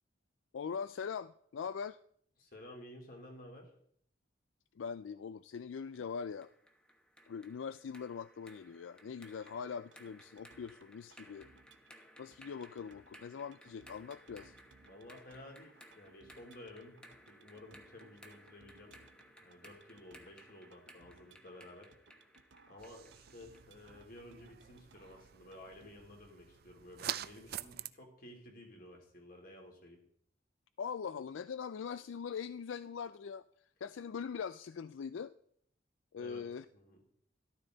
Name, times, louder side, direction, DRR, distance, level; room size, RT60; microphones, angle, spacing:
voice 1, 0.5-2.0 4.8-6.5 7.3-11.5 12.2-14.5 30.8-35.3 36.1-36.7, left 6 dB, 80° left, 14 dB, 0.4 m, -42 dB
voice 2, 2.4-3.7 14.8-19.0 19.4-21.9 22.7-30.0 36.2-37.0, left 1 dB, 50° left, 1 dB, 3.3 m, -53 dB
sound 1, 5.9-23.7, equal, 5° left, 1.1 m, -60 dB
sound 2, 9.4-25.9, right 3 dB, 70° right, 1.0 m, -65 dB
sound 3, 22.8-27.9, right 11 dB, 50° right, 0.4 m, -46 dB
13.5 x 13.0 x 4.0 m, 0.65 s
head